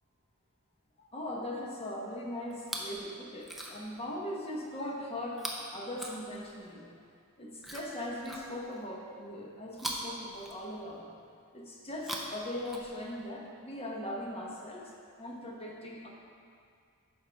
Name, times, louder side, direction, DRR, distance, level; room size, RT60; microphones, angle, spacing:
voice 1, 1.0-5.4 5.7-6.9 7.4-11.0 11.5-14.9 15.2-16.1, left 1 dB, 25° left, -2 dB, 1.0 m, -40 dB
Chewing mastication, 2.5-3.0 3.4-4.0 5.3-6.7 7.6-8.9 9.7-11.0 11.9-13.3 14.2-14.3, equal, ahead, 0.6 m, -42 dB
9.1 x 6.0 x 3.5 m, 2.3 s
head